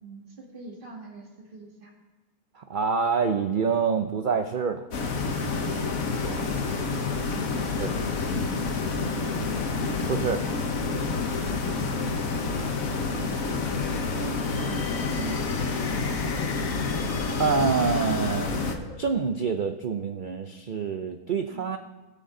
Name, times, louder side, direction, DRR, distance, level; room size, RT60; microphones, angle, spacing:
voice 1, 0.0-1.9 5.5-5.8 7.6-9.6 11.5-12.1 12.9-16.0 21.5-21.7, right 3 dB, 35° right, -1 dB, 2.0 m, -42 dB
voice 2, 2.6-4.9 6.2-6.4 7.8-7.9 10.1-10.4 17.4-18.6 19.0-21.8, right 5 dB, 85° right, 7 dB, 0.4 m, -26 dB
sound 1, 4.9-18.7, left 4 dB, 70° left, 1.5 m, -28 dB
sound 2, 13.3-19.3, left 4 dB, 40° left, 0.5 m, -41 dB
19.5 x 6.9 x 3.8 m, 1.3 s
omnidirectional pair, 1.6 m